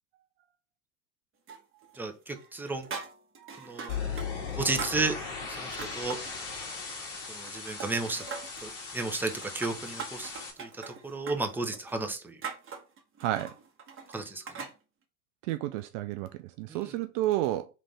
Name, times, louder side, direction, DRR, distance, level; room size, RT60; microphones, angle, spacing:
sound 1, 1.5-2.0 2.3-4.3 4.5-6.3 6.7-7.5 7.8-8.7 9.2-14.8, right 5 dB, 25° right, 1.1 m, -42 dB
voice 1, 2.0-2.9 3.6-3.9 4.5-5.2 5.5-6.2 7.3-8.2 8.6-10.3 10.6-12.4 14.1-14.6 16.7-16.9, right 3 dB, 5° right, 0.7 m, -33 dB
voice 2, 3.4-3.7 4.1-4.4 13.2-13.5 15.4-17.7, right 14 dB, 55° right, 0.5 m, -32 dB
sound 2, 3.9-10.5, left 5 dB, 55° left, 1.8 m, -38 dB
3.7 x 3.3 x 3.1 m
hypercardioid pair, 80°, 47 cm